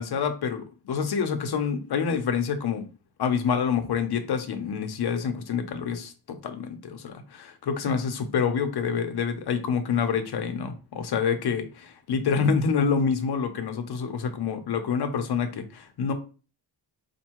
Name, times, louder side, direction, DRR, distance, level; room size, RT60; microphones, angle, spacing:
voice 1, 0.0-2.9 3.2-6.1 6.4-16.1, left 6 dB, 60° left, 0.7 m, -27 dB
4.4 x 2.7 x 2.9 m
wide cardioid pair, 145°, 44 cm